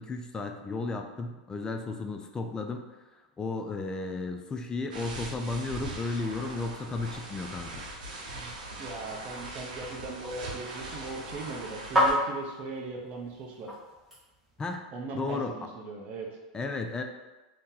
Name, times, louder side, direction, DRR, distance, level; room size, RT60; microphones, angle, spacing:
voice 1, 0.0-2.9 3.4-7.8 14.6-14.9 15.1-15.5 16.5-17.0, left 3 dB, 15° left, 5 dB, 0.3 m, -34 dB
sound 1, 4.9-12.1, right 2 dB, 85° right, 0.7 m, -41 dB
voice 2, 8.8-13.7 14.9-16.4, right 3 dB, 40° right, -1 dB, 0.7 m, -39 dB
sound 2, 8.9-14.7, equal, 5° right, 1.1 m, -33 dB
2.8 x 2.7 x 3.7 m, 1.1 s
supercardioid pair, 120°, 4 cm